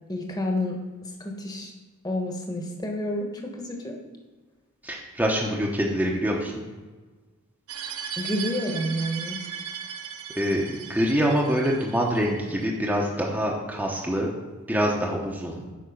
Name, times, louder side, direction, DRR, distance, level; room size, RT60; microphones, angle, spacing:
voice 1, 0.1-0.8 1.2-1.7 2.0-4.0 8.2-9.4, left 1 dB, 20° left, 1 dB, 1.3 m, -29 dB
voice 2, 4.8-6.6 10.4-14.3 14.7-15.6, equal, 10° right, -2 dB, 0.9 m, -25 dB
sound 1, 7.7-12.7, right 7 dB, 85° right, 0.9 m, -37 dB
8.6 x 5.4 x 5.3 m, 1.3 s
head